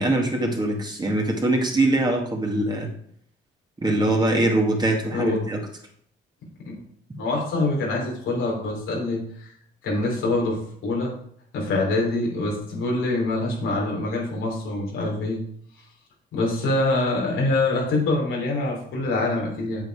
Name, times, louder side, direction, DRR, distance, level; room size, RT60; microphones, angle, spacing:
voice 1, 0.0-2.9 3.8-5.6, right 2 dB, 20° right, 1 dB, 2.1 m, -22 dB
voice 2, 5.1-5.5 6.6-6.8 7.2-9.5 9.8-11.1 11.5-15.4 16.3-19.8, left 2 dB, 85° left, -2 dB, 3.4 m, -25 dB
8.2 x 7.7 x 4.8 m, 0.65 s
cardioid pair, 90°, 20 cm